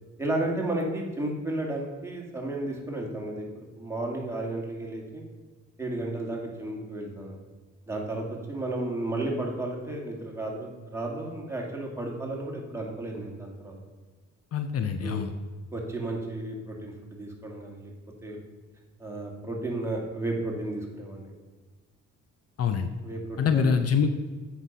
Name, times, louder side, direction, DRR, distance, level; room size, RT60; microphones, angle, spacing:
voice 1, 0.2-5.2 5.8-7.3 7.9-13.7 15.0-15.2 15.7-17.9 18.2-18.4 19.0-21.3 23.0-23.7, right 2 dB, 10° right, -1 dB, 2.3 m, -33 dB
voice 2, 14.5-15.3 22.6-22.9 23.4-24.1, left 6 dB, 55° left, 8 dB, 0.7 m, -24 dB
8.1 x 5.9 x 5.4 m, 1.4 s
cardioid pair, 90°, 30 cm